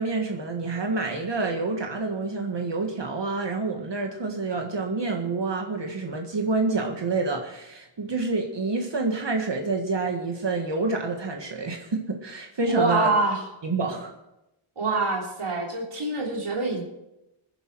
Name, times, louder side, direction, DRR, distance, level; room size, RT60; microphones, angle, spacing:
voice 1, 0.0-13.1 13.6-14.1, right 3 dB, 55° right, 3 dB, 1.8 m, -28 dB
voice 2, 12.7-13.4 14.8-16.8, right 2 dB, 80° right, 0 dB, 3.3 m, -25 dB
20.0 x 10.5 x 4.7 m, 0.91 s
wide cardioid pair, 60°, 50 cm